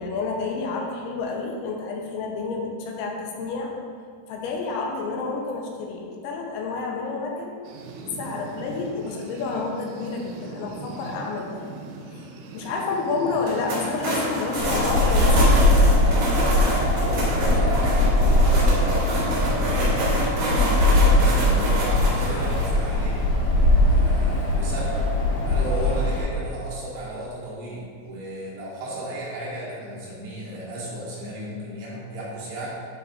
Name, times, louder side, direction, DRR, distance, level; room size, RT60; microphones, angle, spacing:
voice 1, 0.0-3.7 4.3-7.6 8.0-11.6 12.1-15.5, left 4 dB, 85° left, 0 dB, 3.0 m, -29 dB
sound 1, 7.6-14.2, right 3 dB, 90° right, 3.2 m, -40 dB
sound 2, 13.4-22.7, right 1 dB, 55° right, 3.1 m, -27 dB
Wind, 14.6-26.2, left 1 dB, 65° left, 2.5 m, -20 dB
voice 2, 16.9-20.3 20.8-23.2 23.9-25.0 25.5-32.7, right 1 dB, 70° right, -6 dB, 3.3 m, -34 dB
11.0 x 4.9 x 2.5 m, 2.1 s
omnidirectional pair, 5.5 m